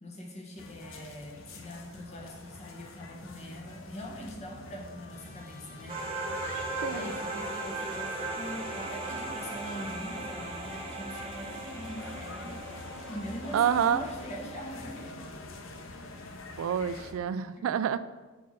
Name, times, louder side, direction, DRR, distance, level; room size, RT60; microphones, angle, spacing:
voice 1, 0.0-6.0 6.9-15.2 17.6-17.7, equal, 35° left, 0 dB, 1.1 m, -42 dB
sound 1, 0.6-17.1, left 2 dB, 70° left, 0.7 m, -45 dB
Trumpet, 3.9-8.8, left 4 dB, 55° left, 1.9 m, -56 dB
sound 2, 5.9-14.5, right 2 dB, 30° right, 0.9 m, -38 dB
voice 2, 6.8-7.1 13.5-14.0 16.6-18.0, right 8 dB, 90° right, 16 dB, 0.3 m, -27 dB
6.2 x 4.3 x 4.1 m, 1.3 s
head